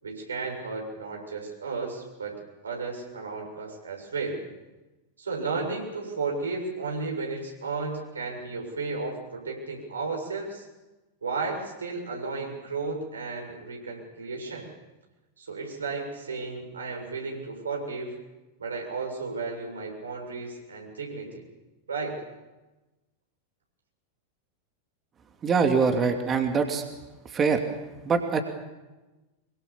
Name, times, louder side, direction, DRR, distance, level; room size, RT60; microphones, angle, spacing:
voice 1, 0.0-4.4 5.2-10.7 11.2-14.7 15.4-18.1 18.6-21.4 21.9-22.2, right 4 dB, 70° right, 1 dB, 7.3 m, -33 dB
voice 2, 25.4-26.8 27.3-27.6 28.0-28.4, right 5 dB, 25° right, 5 dB, 2.8 m, -23 dB
25.5 x 24.0 x 7.3 m, 1.1 s
figure-of-eight pair, 90°, 0 cm